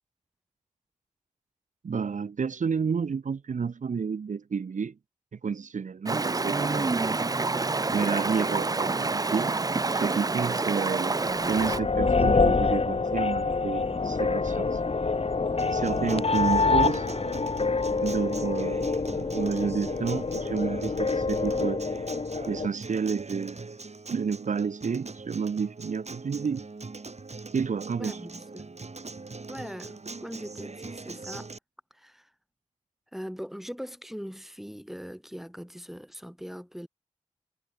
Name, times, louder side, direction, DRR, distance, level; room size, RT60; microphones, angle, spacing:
voice 1, 1.8-5.0 5.3-6.9 7.9-9.6 9.9-11.1 11.5-14.8 15.7-17.1 18.0-21.8 22.5-23.7 24.1-26.7 27.5-28.2, right 6 dB, 80° right, 0.6 m, -30 dB
Stream, 6.0-11.8, right 3 dB, 30° right, 0.4 m, -27 dB
sound 1, 11.3-22.7, left 4 dB, 50° left, 0.9 m, -26 dB
Acoustic guitar, 15.6-31.6, right 3 dB, 60° right, 2.7 m, -41 dB
voice 2, 28.0-28.8 29.5-31.5 31.9-32.3 33.1-36.9, equal, ahead, 4.3 m, -41 dB
wide cardioid pair, 60°, 13 cm